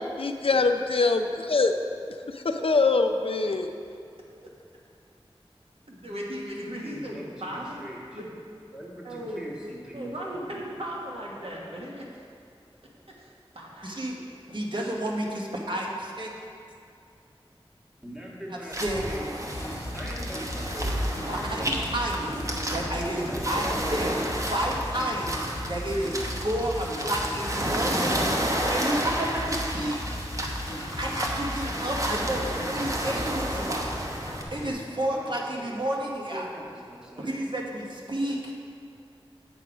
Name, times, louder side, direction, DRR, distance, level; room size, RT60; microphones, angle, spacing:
voice 1, 0.2-1.7 2.4-3.7, left 3 dB, 70° left, 6 dB, 0.5 m, -23 dB
voice 2, 5.9-7.8 8.1-8.2 9.0-9.4 9.9-12.1 13.2-14.1, equal, 75° right, -3 dB, 1.3 m, -37 dB
voice 3, 6.8-8.2 8.7-10.8 18.0-19.3 19.9-22.0 22.3-24.2 35.0-37.3, equal, 10° right, -4 dB, 1.7 m, -42 dB
voice 4, 13.8-14.2 14.5-16.3 18.5-19.0 21.3-22.4 22.7-24.1 24.5-25.4 25.7-28.3 28.7-30.0 31.0-33.9 34.5-36.5 37.2-38.5, right 1 dB, 55° right, -2 dB, 1.2 m, -31 dB
sound 1, 18.7-34.4, right 1 dB, 35° right, 0.9 m, -31 dB
sound 2, 19.5-34.7, left 1 dB, 25° left, 1.1 m, -36 dB
8.5 x 5.2 x 4.9 m, 2.5 s
wide cardioid pair, 50°, 10 cm